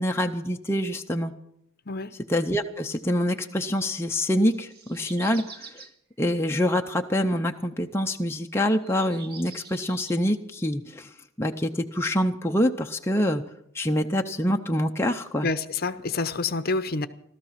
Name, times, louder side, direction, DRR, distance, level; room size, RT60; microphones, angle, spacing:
voice 1, 0.0-1.3 2.3-5.7 6.2-11.1 11.4-13.4 13.7-15.5, equal, 10° left, 3 dB, 0.6 m, -25 dB
sound 1, 4.4-5.9 6.7-6.8 8.7-10.2, right 5 dB, 45° right, 1.4 m, -46 dB
voice 2, 15.4-17.1, left 3 dB, 45° left, 12 dB, 0.7 m, -28 dB
16.5 x 13.5 x 5.8 m, 0.73 s
head